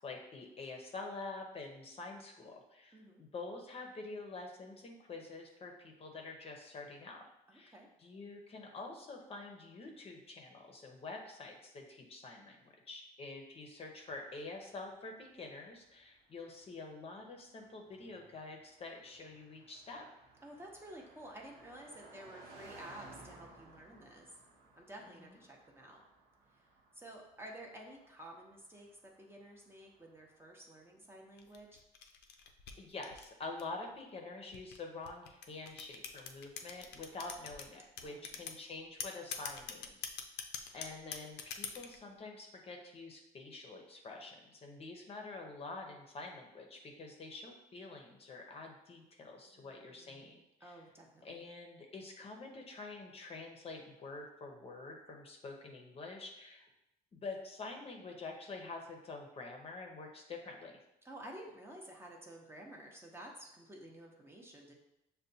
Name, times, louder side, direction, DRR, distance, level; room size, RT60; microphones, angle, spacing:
voice 1, 0.0-7.2 7.5-20.1 25.0-25.3 32.8-40.1 40.7-50.8 51.2-56.7 57.1-60.8, left 3 dB, 35° left, 2 dB, 0.7 m, -47 dB
voice 2, 2.9-3.2 7.5-7.9 20.4-24.3 24.8-26.0 26.5-26.6 26.9-31.8 38.0-38.6 49.5-51.4 61.0-64.7, right 1 dB, 15° right, -1 dB, 0.6 m, -52 dB
Car passing by, 14.6-31.0, right 3 dB, 65° right, 1.0 m, -60 dB
sound 1, 31.4-33.8 34.5-37.7 38.0-38.6 39.0-42.0, left 7 dB, 75° left, 0.5 m, -43 dB
6.4 x 2.2 x 2.7 m, 0.89 s
cardioid pair, 110°, 17 cm